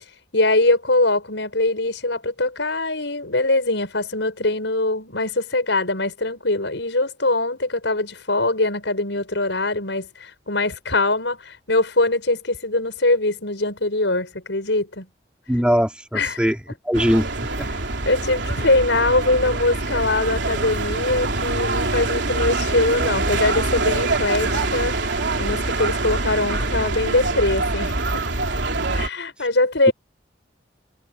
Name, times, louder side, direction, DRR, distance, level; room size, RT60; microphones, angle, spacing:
voice 1, 0.3-15.1 16.1-16.5 18.0-28.2 28.9-29.9, left 2 dB, 85° left, 6.0 m, -22 dB
voice 2, 15.5-16.6 16.9-17.7, equal, 5° right, 4.3 m, -21 dB
sound 1, 16.9-29.1, right 2 dB, 80° right, 3.3 m, -24 dB
head